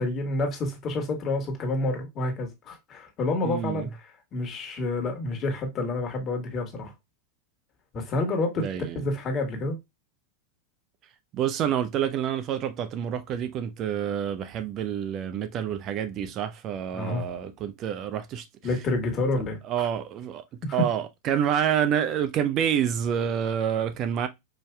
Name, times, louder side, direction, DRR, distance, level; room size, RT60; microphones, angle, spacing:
voice 1, 0.0-3.9 4.3-6.9 7.9-9.8 16.9-17.3 18.6-19.9 20.6-20.8, left 2 dB, 35° left, 1.5 m, -29 dB
voice 2, 3.4-3.9 8.6-9.0 11.3-18.4 19.6-20.4 20.7-24.3, right 9 dB, 40° right, 0.5 m, -28 dB
5.0 x 2.7 x 2.2 m
hypercardioid pair, 100°, 0 cm